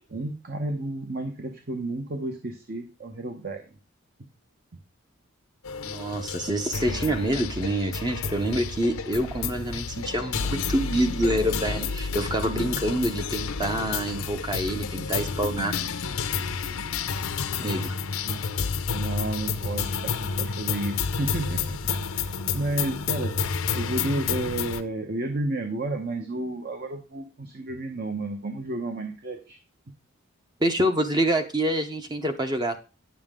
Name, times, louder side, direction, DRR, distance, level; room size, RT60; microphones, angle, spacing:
voice 1, 0.1-3.7 18.2-18.4 18.9-23.4 23.7-29.6, right 2 dB, 45° right, 5 dB, 0.9 m, -32 dB
sound 1, 5.6-24.8, left 5 dB, 80° left, 0.7 m, -30 dB
voice 2, 5.8-15.9 17.6-17.9 30.6-32.8, right 1 dB, 20° right, 6 dB, 0.7 m, -26 dB
9.9 x 7.2 x 3.6 m, 0.32 s
head